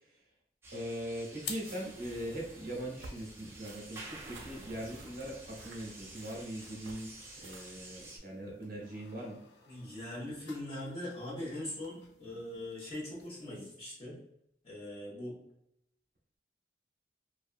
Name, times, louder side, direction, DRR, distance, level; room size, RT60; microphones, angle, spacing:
sound 1, 0.6-8.2, right 2 dB, 15° right, 0.4 m, -50 dB
voice 1, 0.7-7.1 7.4-9.4, right 1 dB, 55° right, -2 dB, 0.7 m, -41 dB
sound 2, 0.9-13.7, left 6 dB, 75° left, 0.4 m, -53 dB
sound 3, 3.0-7.9, right 3 dB, 90° right, 0.4 m, -53 dB
voice 2, 9.7-14.2 14.6-15.4, left 1 dB, 35° left, -7 dB, 1.1 m, -41 dB
2.6 x 2.2 x 2.5 m, 0.75 s
head